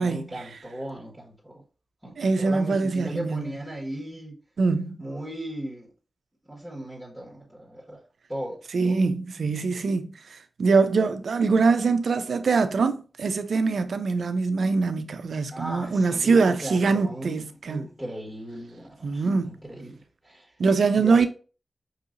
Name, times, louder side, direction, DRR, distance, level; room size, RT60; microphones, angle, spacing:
voice 1, 0.0-1.6 2.0-4.3 5.0-5.9 6.5-8.0 8.3-8.6 8.8-9.0 15.5-20.5 20.9-21.3, right 1 dB, 5° right, 1.5 m, -37 dB
voice 2, 2.2-3.5 4.6-5.1 8.7-17.8 19.0-19.5 20.6-21.3, right 4 dB, 80° right, 0.4 m, -23 dB
5.5 x 2.8 x 2.5 m
cardioid pair, 60°, 0 cm